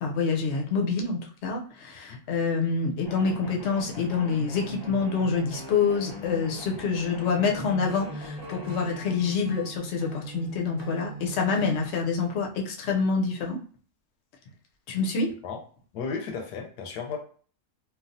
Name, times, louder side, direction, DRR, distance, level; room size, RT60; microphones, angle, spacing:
voice 1, 0.0-13.6 14.9-15.3, left 5 dB, 65° left, 1 dB, 0.7 m, -27 dB
sound 1, 3.0-9.1, left 2 dB, 20° left, 0.6 m, -41 dB
Acoustic guitar / Strum, 7.9-12.0, right 5 dB, 80° right, 1.1 m, -41 dB
voice 2, 15.9-17.2, left 5 dB, 85° left, 4 dB, 1.1 m, -34 dB
3.2 x 2.3 x 2.6 m, 0.43 s
omnidirectional pair, 1.7 m